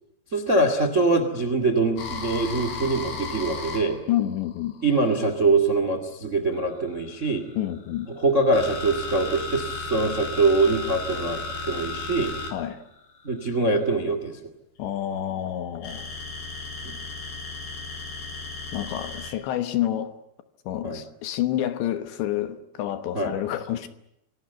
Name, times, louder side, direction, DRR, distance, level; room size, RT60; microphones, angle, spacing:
voice 1, 0.3-4.0 4.8-7.4 8.1-12.3 13.2-14.3 16.8-16.9 20.8-21.0 23.1-23.3, right 3 dB, 60° right, 0.7 m, -23 dB
sound 1, 2.0-5.4 6.5-13.9 15.8-19.3, left 3 dB, 55° left, 5.7 m, -34 dB
voice 2, 4.1-4.8 7.6-8.1 12.5-12.8 14.8-16.1 18.7-20.1 20.7-23.9, left 12 dB, 70° left, 3.1 m, -28 dB
26.5 x 18.0 x 9.3 m
omnidirectional pair, 5.8 m